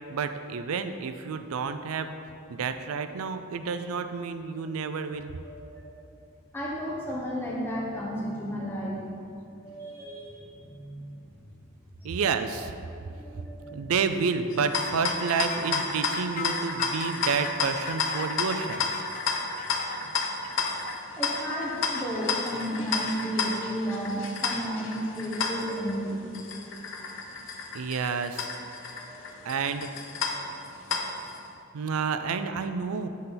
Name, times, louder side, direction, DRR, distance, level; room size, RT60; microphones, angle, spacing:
voice 1, 0.1-2.1 2.5-5.3 12.0-12.7 13.3-13.4 13.7-18.9 20.0-20.1 27.7-28.5 29.4-29.9 31.7-33.1, right 5 dB, 85° right, 9 dB, 0.4 m, -30 dB
voice 2, 5.4-5.9 6.5-9.2 9.6-11.1 12.0-12.1 13.0-13.8 21.2-26.6 29.0-29.2 30.3-30.6, equal, 10° left, -4 dB, 1.0 m, -33 dB
sound 1, 14.5-31.4, left 4 dB, 65° left, 0.7 m, -32 dB
sound 2, 14.8-23.3, left 6 dB, 35° left, 0.3 m, -40 dB
10.5 x 4.2 x 3.9 m, 2.6 s
head